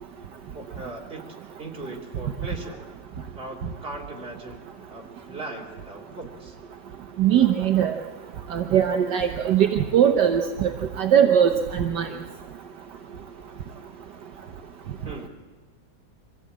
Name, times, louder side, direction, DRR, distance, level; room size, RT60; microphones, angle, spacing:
voice 1, 0.5-1.2 1.6-2.8 3.3-6.6 15.0-15.3, right 2 dB, 30° right, -1 dB, 3.2 m, -38 dB
voice 2, 7.2-7.9 8.5-10.7 11.0-12.1, right 9 dB, 70° right, 5 dB, 1.5 m, -20 dB
24.5 x 16.0 x 8.7 m, 1.4 s
omnidirectional pair, 2.0 m